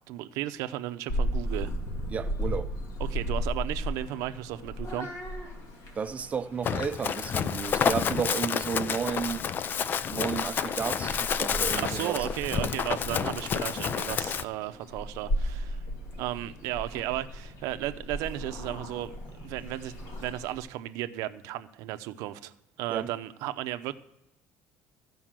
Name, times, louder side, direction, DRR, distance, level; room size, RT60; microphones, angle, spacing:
voice 1, 0.1-1.7 3.0-5.1 11.7-15.8 16.2-19.1 19.4-19.9 20.2-23.9, right 14 dB, 80° right, 0.7 m, -34 dB
Purr / Meow, 1.1-20.6, equal, 60° left, 2.4 m, -36 dB
voice 2, 2.1-2.7 6.0-9.5 10.1-12.2 12.6-12.7 22.9-23.1, right 6 dB, 25° right, 0.6 m, -32 dB
Run, 6.6-14.4, left 7 dB, 35° left, 0.4 m, -29 dB
14.5 x 5.5 x 7.5 m
cardioid pair, 145°, 6 cm